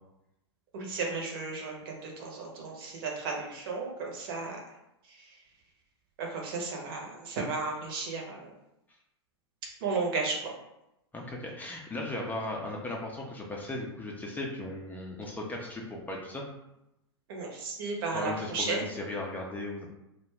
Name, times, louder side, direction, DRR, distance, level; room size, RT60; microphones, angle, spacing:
voice 1, 0.7-4.6 5.2-5.3 6.2-8.5 9.8-10.5 17.3-18.9, right 4 dB, 55° right, 0 dB, 0.8 m, -34 dB
voice 2, 11.1-16.4 18.1-19.9, left 2 dB, 10° left, -1 dB, 0.5 m, -37 dB
2.6 x 2.2 x 3.2 m, 0.88 s
hypercardioid pair, 100°, 15 cm